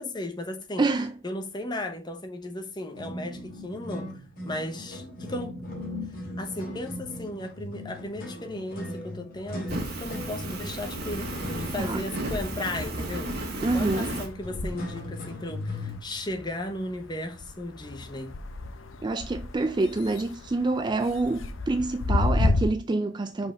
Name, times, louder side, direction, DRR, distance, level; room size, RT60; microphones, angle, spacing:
voice 1, 0.0-0.9 1.2-4.2 4.5-5.6 6.4-13.3 13.7-18.4, left 1 dB, 20° left, 1.0 m, -35 dB
voice 2, 0.8-1.1 11.8-12.0 13.6-14.2 19.0-23.5, right 2 dB, 20° right, 0.3 m, -27 dB
sound 1, 2.9-16.0, left 1 dB, 45° left, 2.0 m, -39 dB
sound 2, 9.4-10.6 10.9-22.6, left 2 dB, 75° left, 0.7 m, -33 dB
Fire, 9.7-14.3, right 1 dB, 50° right, 1.6 m, -33 dB
5.5 x 4.4 x 5.8 m
head